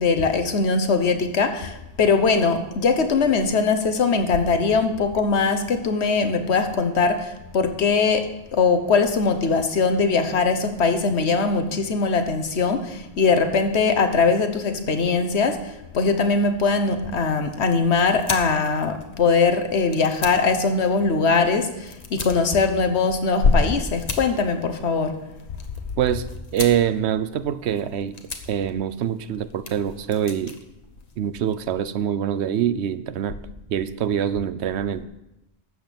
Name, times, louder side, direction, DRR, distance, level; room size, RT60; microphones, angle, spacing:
voice 1, 0.0-15.6 15.9-25.1, left 4 dB, 90° left, 8 dB, 1.4 m, -21 dB
sound 1, 17.2-31.7, left 3 dB, 40° left, 1.1 m, -40 dB
voice 2, 26.0-30.6 31.2-33.4 33.7-35.1, right 9 dB, 90° right, 14 dB, 0.9 m, -25 dB
13.0 x 8.0 x 5.2 m, 0.91 s
omnidirectional pair, 1.1 m